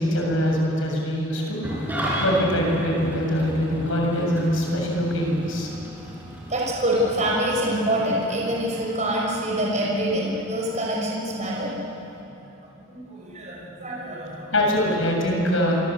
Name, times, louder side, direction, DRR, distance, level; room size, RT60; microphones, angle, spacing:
voice 1, 0.0-1.6 2.2-5.7 14.5-15.8, equal, 60° left, 0 dB, 7.2 m, -23 dB
Engine starting / Idling, 1.6-12.2, equal, 10° right, 6.4 m, -35 dB
voice 2, 1.6-2.2 2.9-3.0 6.5-12.4 12.9-14.5, right 1 dB, 30° right, -3 dB, 6.0 m, -26 dB
27.5 x 26.0 x 8.3 m, 2.9 s
head